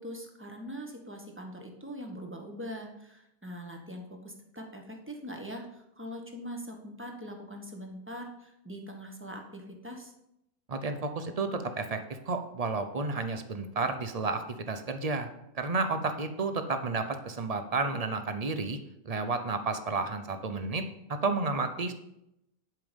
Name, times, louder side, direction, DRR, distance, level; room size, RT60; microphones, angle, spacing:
voice 1, 0.0-10.1, equal, 10° right, 2 dB, 1.2 m, -42 dB
voice 2, 10.7-15.3 15.5-18.8 19.0-21.9, right 3 dB, 45° right, 8 dB, 0.5 m, -31 dB
11.0 x 5.3 x 5.2 m, 0.82 s
omnidirectional pair, 1.5 m